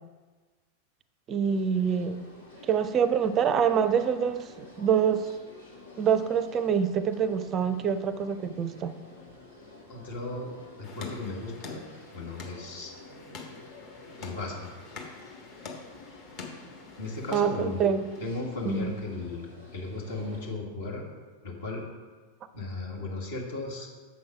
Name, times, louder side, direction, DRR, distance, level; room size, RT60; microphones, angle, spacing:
voice 1, 1.3-2.3 2.6-5.3 6.0-8.9 17.3-18.0 18.6-18.9, right 7 dB, 30° right, 13 dB, 0.4 m, -26 dB
sound 1, 1.4-20.5, left 2 dB, 80° left, 1.8 m, -50 dB
voice 2, 9.9-11.8 12.1-12.9 14.2-14.7 17.0-17.9 18.2-21.0 21.4-21.8 22.5-23.9, left 2 dB, 60° left, -1 dB, 1.5 m, -36 dB
sound 2, 10.8-18.2, left 4 dB, 40° left, 1.3 m, -46 dB
7.1 x 6.1 x 4.8 m, 1.4 s
figure-of-eight pair, 90°, 0 cm